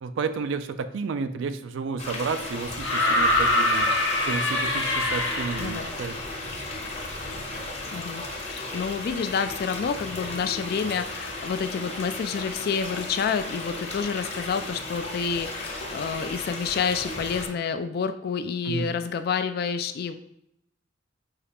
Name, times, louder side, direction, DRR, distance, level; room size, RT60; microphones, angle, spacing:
voice 1, 0.0-3.9 4.3-6.2 18.7-18.9, right 5 dB, 75° right, 11 dB, 0.3 m, -31 dB
sound 1, 2.0-17.5, left 2 dB, 35° left, 0.9 m, -35 dB
sound 2, 2.8-5.9 7.1-7.2, left 1 dB, 70° left, 0.7 m, -24 dB
voice 2, 7.9-8.2 8.5-20.1, left 6 dB, 55° left, 10 dB, 0.3 m, -29 dB
5.5 x 2.4 x 3.4 m, 0.78 s
head